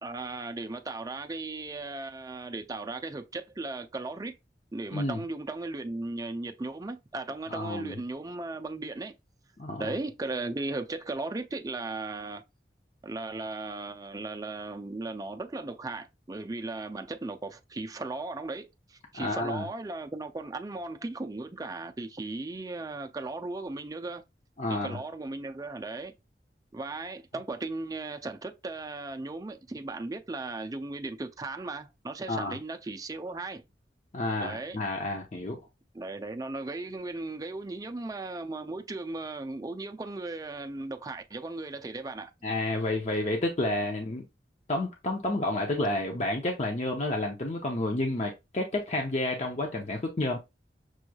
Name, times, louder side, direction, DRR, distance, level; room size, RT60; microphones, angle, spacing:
voice 1, 0.0-4.3 4.7-9.1 9.8-12.4 13.0-24.2 24.7-26.1 26.7-33.6 34.4-34.8 35.9-42.3, right 2 dB, 20° right, 0.4 m, -37 dB
voice 2, 7.5-7.9 9.6-10.0 19.2-19.7 24.6-25.0 32.3-32.6 34.1-35.6 42.4-44.2 44.7-50.4, left 2 dB, 40° left, 0.7 m, -30 dB
6.1 x 3.1 x 2.3 m
head